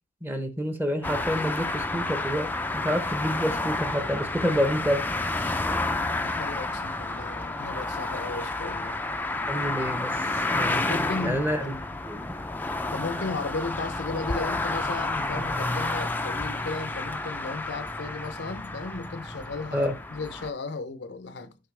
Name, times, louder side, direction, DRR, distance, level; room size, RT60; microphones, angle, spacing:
voice 1, 0.2-5.0 5.3-5.6 9.5-11.7 12.1-12.3 19.7-19.9, equal, 10° right, 0.9 m, -29 dB
sound 1, 1.0-20.5, left 2 dB, 10° left, 0.4 m, -30 dB
voice 2, 6.2-9.0 10.9-11.4 12.9-21.6, left 3 dB, 65° left, 0.6 m, -35 dB
6.6 x 5.5 x 3.2 m
head